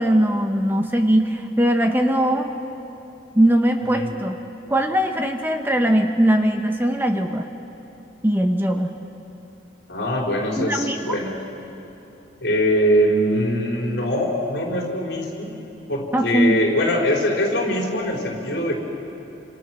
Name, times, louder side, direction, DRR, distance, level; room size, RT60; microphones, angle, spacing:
voice 1, 0.0-2.5 3.3-4.4 4.7-7.5 8.2-8.9 10.6-11.2 16.1-16.6, right 1 dB, 10° right, 4 dB, 0.9 m, -20 dB
voice 2, 9.9-11.4 12.4-15.5 15.9-18.7, equal, 65° left, -1 dB, 4.8 m, -22 dB
28.5 x 27.0 x 6.3 m, 2.9 s
head